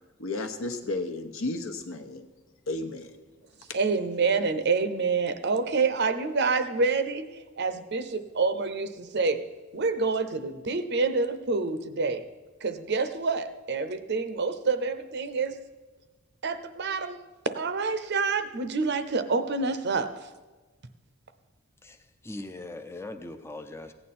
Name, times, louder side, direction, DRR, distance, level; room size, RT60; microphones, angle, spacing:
voice 1, 0.2-2.2 2.7-3.1 3.7-3.8, left 2 dB, 65° left, 6 dB, 1.0 m, -33 dB
voice 2, 3.7-7.3 7.6-9.4 9.7-12.2 12.6-15.6 16.4-17.2 17.4-20.1, right 4 dB, 50° right, 10 dB, 0.7 m, -27 dB
voice 3, 21.8-23.9, left 2 dB, 10° left, 6 dB, 0.5 m, -40 dB
15.5 x 9.2 x 4.3 m, 1.3 s
head